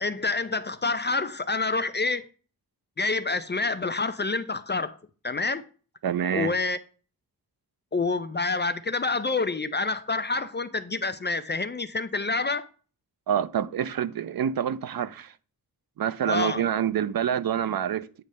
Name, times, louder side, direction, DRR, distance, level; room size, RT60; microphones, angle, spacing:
voice 1, 0.0-2.3 3.0-5.0 5.2-5.6 6.3-6.8 7.9-12.7 16.3-16.6, left 3 dB, 30° left, 0.5 m, -27 dB
voice 2, 6.0-6.5 13.3-15.3 16.0-18.2, right 9 dB, 75° right, 0.5 m, -27 dB
8.8 x 3.2 x 6.4 m
wide cardioid pair, 115°, 36 cm